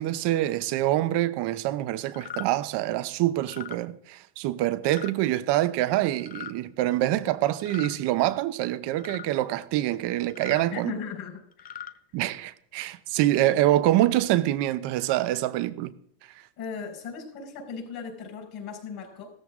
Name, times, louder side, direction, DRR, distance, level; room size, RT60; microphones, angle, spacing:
voice 1, 0.0-10.9 12.1-15.9, right 14 dB, 55° right, 1.0 m, -25 dB
sound 1, 2.1-2.5 3.4-3.8 4.8-5.1 6.2-6.5 7.6-8.0 9.0-9.3 10.3-10.6 11.5-11.9, left 10 dB, 20° left, 0.5 m, -39 dB
voice 2, 10.7-11.9 16.6-19.3, left 6 dB, 50° left, 5.4 m, -38 dB
16.0 x 14.0 x 3.7 m
cardioid pair, 130°, 50 cm